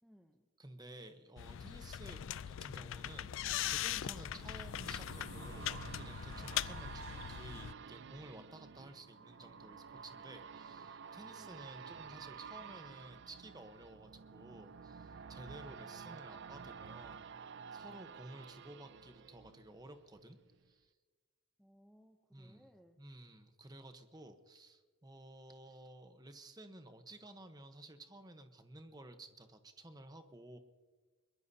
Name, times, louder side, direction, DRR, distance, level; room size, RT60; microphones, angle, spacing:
voice 1, 0.0-0.5 11.4-11.7 21.6-23.0, equal, ahead, 3 dB, 0.7 m, -64 dB
voice 2, 0.6-17.3 17.7-20.4 20.7-20.9 22.3-22.7 23.0-30.6, right 1 dB, 20° right, 7 dB, 1.0 m, -54 dB
sound 1, 1.4-7.7, left 11 dB, 60° left, 0.3 m, -41 dB
sound 2, 2.6-20.2 20.6-20.7, right 6 dB, 55° right, 0.4 m, -51 dB
22.0 x 22.0 x 2.8 m, 1.5 s
head